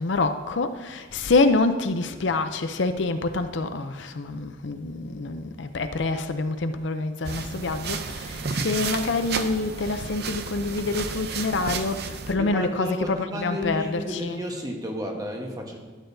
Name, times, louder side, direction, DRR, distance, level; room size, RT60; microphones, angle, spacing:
voice 1, 0.0-14.4, left 3 dB, 60° left, 0.6 m, -26 dB
sound 1, 7.2-12.3, right 4 dB, 55° right, 0.6 m, -32 dB
voice 2, 12.4-15.8, equal, 20° right, 1.2 m, -32 dB
12.5 x 9.0 x 2.7 m
head